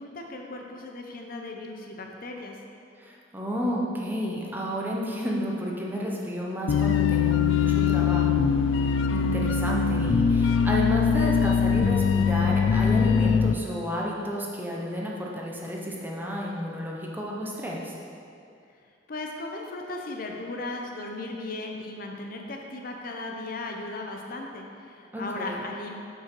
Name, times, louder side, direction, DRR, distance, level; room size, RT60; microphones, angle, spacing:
voice 1, 0.0-2.6 19.1-25.9, left 2 dB, 50° left, 1 dB, 0.7 m, -36 dB
voice 2, 3.0-8.5 8.7-17.9 25.1-25.6, equal, 10° right, -3 dB, 0.8 m, -31 dB
sound 1, 6.7-13.5, left 6 dB, 85° left, 0.3 m, -22 dB
7.7 x 5.5 x 4.6 m, 2.5 s
head